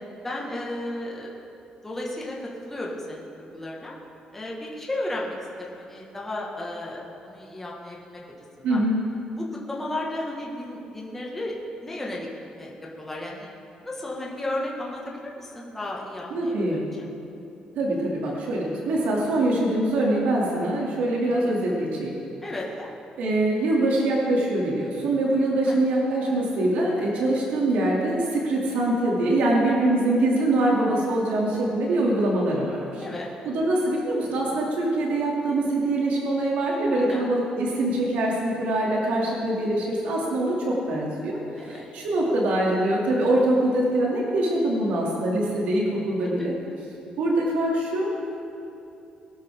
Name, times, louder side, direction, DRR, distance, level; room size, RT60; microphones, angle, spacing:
voice 1, 0.2-1.3 1.8-3.9 4.3-8.2 8.6-8.8 9.3-11.5 11.8-12.3 12.5-13.5 13.8-16.8 22.4-22.9 25.6-25.9 33.0-33.3 36.9-37.3 41.6-41.8 46.2-46.3, left 1 dB, 10° left, -3 dB, 1.8 m, -34 dB
voice 2, 8.6-9.0 16.3-16.8 17.7-22.1 23.2-33.0 33.4-41.4 41.6-46.5 47.2-48.1, right 1 dB, 90° right, -3 dB, 2.7 m, -24 dB
21.5 x 12.0 x 3.7 m, 2.8 s
cardioid pair, 170°, 2 cm